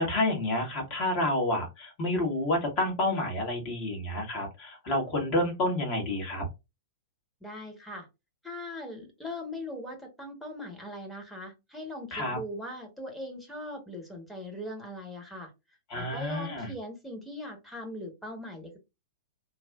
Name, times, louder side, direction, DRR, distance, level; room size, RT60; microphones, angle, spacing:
voice 1, 0.0-6.4 12.1-12.4 15.9-16.7, left 1 dB, 40° left, 2 dB, 1.6 m, -29 dB
voice 2, 7.4-8.1 8.4-15.5 16.0-18.8, left 1 dB, 5° left, 0 dB, 1.2 m, -40 dB
3.2 x 2.3 x 2.4 m, 0.23 s
figure-of-eight pair, 100°, 0 cm